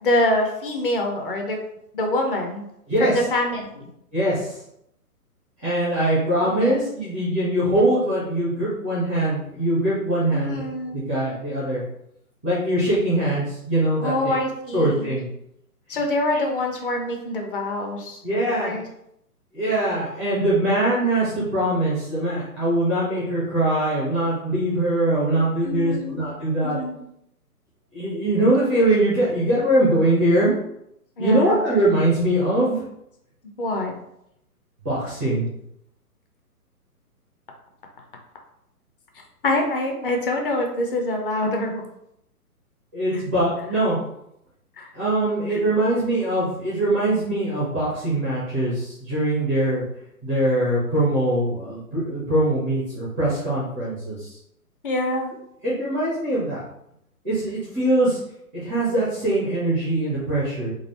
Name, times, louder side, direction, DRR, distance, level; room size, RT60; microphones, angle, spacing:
voice 1, 0.0-1.6 1.9-2.6 3.0-3.9 6.4-6.8 10.3-11.0 14.0-15.2 15.9-18.2 18.6-18.8 25.6-26.2 26.6-27.0 31.2-31.6 33.6-33.9 39.4-41.9 44.8-44.9 45.5-45.6 54.8-55.3, left 1 dB, 35° left, 2 dB, 0.7 m, -25 dB
voice 2, 4.1-4.6 5.6-10.6 10.9-11.8 12.4-14.4 14.7-15.3 18.2-18.7 19.5-26.8 27.9-30.6 31.2-32.9 34.8-35.5 42.9-44.0 44.9-49.8 50.2-54.4 55.6-56.6 57.2-58.2 58.5-60.7, right 1 dB, 10° right, -9 dB, 0.4 m, -22 dB
3.9 x 2.4 x 4.1 m, 0.77 s
hypercardioid pair, 140°, 46 cm